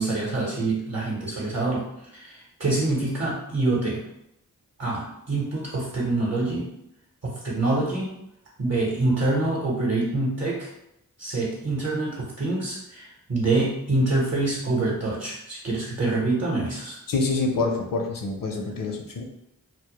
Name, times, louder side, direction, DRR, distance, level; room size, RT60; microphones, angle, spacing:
voice 1, 0.0-1.8 2.1-4.0 4.8-6.6 7.2-8.1 8.6-10.7 11.2-17.0, right 2 dB, 45° right, -6 dB, 0.8 m, -26 dB
voice 2, 17.1-19.2, left 3 dB, 65° left, 2 dB, 0.5 m, -26 dB
2.1 x 2.0 x 2.9 m, 0.80 s
cardioid pair, 40°, 35 cm